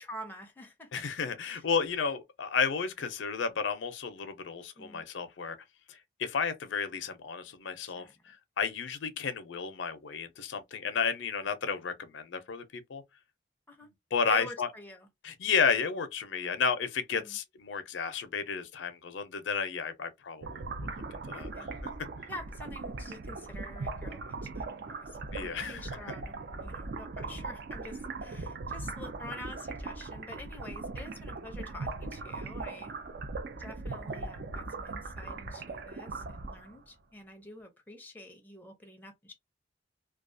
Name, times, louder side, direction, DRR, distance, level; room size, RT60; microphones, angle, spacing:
voice 1, 0.0-0.9 1.4-1.6 4.8-5.0 7.8-8.1 13.7-13.9 14.2-15.1 17.2-17.4 21.3-21.7 22.3-32.9 33.6-39.3, left 1 dB, 10° left, 0.5 m, -47 dB
voice 2, 0.9-5.6 5.9-13.0 13.8-14.7 15.2-20.7 21.3-21.9 25.3-25.9, left 5 dB, 80° left, 0.5 m, -32 dB
sound 1, 20.4-36.8, right 3 dB, 55° right, 0.4 m, -39 dB
2.3 x 2.3 x 2.6 m
head